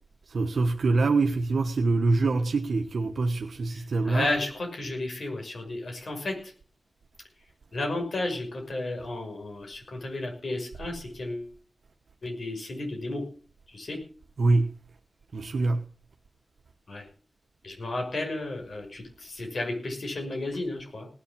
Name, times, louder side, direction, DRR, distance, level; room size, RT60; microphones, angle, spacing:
voice 1, 0.3-4.3 14.4-14.7 15.3-15.8, right 3 dB, 70° right, 1.3 m, -24 dB
voice 2, 3.7-6.5 7.7-11.5 12.2-13.2 13.7-14.0 16.9-17.1 17.6-21.1, left 2 dB, 60° left, 6.0 m, -33 dB
18.5 x 7.4 x 7.3 m
wide cardioid pair, 85°, 0 cm